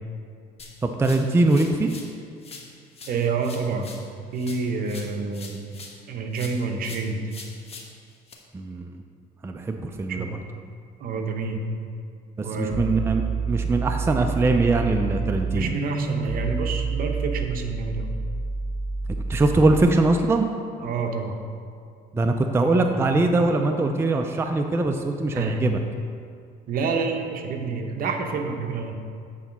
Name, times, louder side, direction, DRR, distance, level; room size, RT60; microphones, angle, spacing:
sound 1, 0.6-2.1 2.4-6.0 6.3-8.3, left 4 dB, 35° left, 1.1 m, -43 dB
voice 1, 0.8-1.9 8.5-8.9 9.4-10.3 12.4-13.2 13.5-15.7 19.3-20.5 22.1-25.8, right 2 dB, 15° right, 5 dB, 0.4 m, -22 dB
voice 2, 3.1-4.0 4.3-5.6 6.1-7.2 10.1-10.3 11.0-11.7 12.4-13.2 15.5-18.1 20.8-21.4 22.7-23.0 25.3-25.6 26.7-29.0, right 4 dB, 60° right, 4 dB, 0.8 m, -28 dB
sound 2, 12.7-19.8, right 4 dB, 35° right, 1.0 m, -28 dB
8.4 x 4.0 x 5.9 m, 2.3 s
cardioid pair, 110°, 17 cm